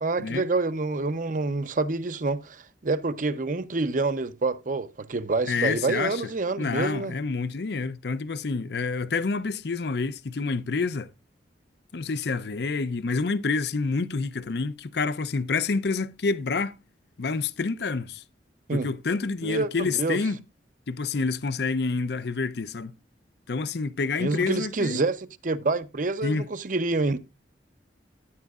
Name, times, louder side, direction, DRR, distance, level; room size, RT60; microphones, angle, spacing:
voice 1, 0.0-7.1 18.7-18.9 19.4-20.2 24.2-27.2, right 3 dB, 45° right, 0.6 m, -27 dB
voice 2, 5.5-6.2 6.6-11.1 11.9-16.8 17.2-18.2 18.7-20.4 20.9-22.9 23.5-25.0 26.2-26.5, left 4 dB, 65° left, 0.5 m, -28 dB
14.0 x 9.4 x 2.4 m
head